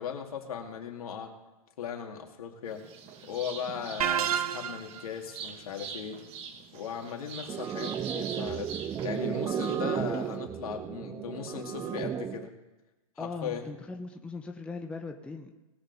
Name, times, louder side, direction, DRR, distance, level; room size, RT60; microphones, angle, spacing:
voice 1, 0.0-1.3 1.8-2.8 3.3-6.2 6.7-12.5 13.2-13.6, left 7 dB, 75° left, 2 dB, 2.4 m, -38 dB
sound 1, 2.6-10.4, right 6 dB, 30° right, 1.4 m, -45 dB
sound 2, 4.0-5.0, right 9 dB, 75° right, 0.9 m, -29 dB
sound 3, 7.5-12.5, right 8 dB, 15° right, 0.4 m, -34 dB
voice 2, 13.2-15.5, left 3 dB, 5° left, 3 dB, 0.8 m, -39 dB
20.5 x 7.9 x 4.1 m, 1.1 s
hypercardioid pair, 140°, 19 cm